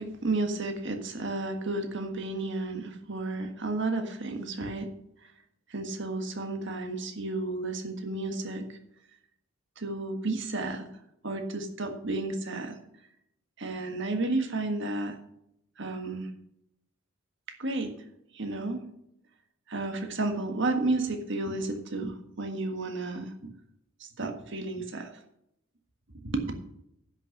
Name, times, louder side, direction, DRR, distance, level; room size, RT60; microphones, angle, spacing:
voice 1, 0.0-4.9 5.7-8.8 9.8-10.9 11.2-12.8 13.6-15.2 15.8-16.3 17.6-17.9 18.3-18.9 19.7-23.5 24.0-25.1 26.2-26.5, right 2 dB, 55° right, 5 dB, 1.6 m, -32 dB
10.5 x 6.6 x 6.0 m, 0.78 s
head